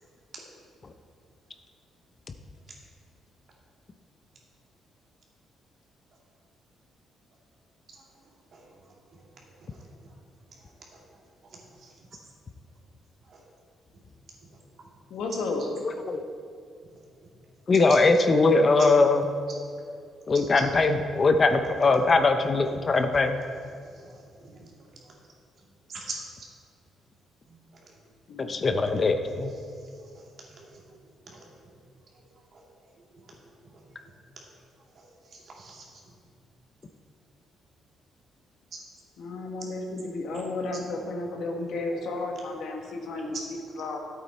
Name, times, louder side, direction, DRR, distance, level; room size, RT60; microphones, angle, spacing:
voice 1, 8.5-9.3 9.7-9.9 10.6-11.0 11.4-11.9 13.3-13.4 23.8-24.7 25.0-25.1 25.9-26.1 27.5-27.6 27.9-28.0 28.5-28.7 29.8-31.0 31.2-31.7 32.1-32.2 32.5-32.6 33.0-33.1 33.4-33.8 34.9-35.8 42.2-42.3, right 4 dB, 55° right, -3 dB, 2.3 m, -47 dB
voice 2, 15.1-15.7 28.3-28.5 28.9-29.1 39.2-44.0, left 2 dB, 75° left, 2 dB, 1.4 m, -33 dB
voice 3, 17.7-19.2 20.3-23.4 28.4-29.5, left 3 dB, 35° left, 7 dB, 0.6 m, -21 dB
11.0 x 8.2 x 4.3 m, 2.3 s
cardioid pair, 90°, 0 cm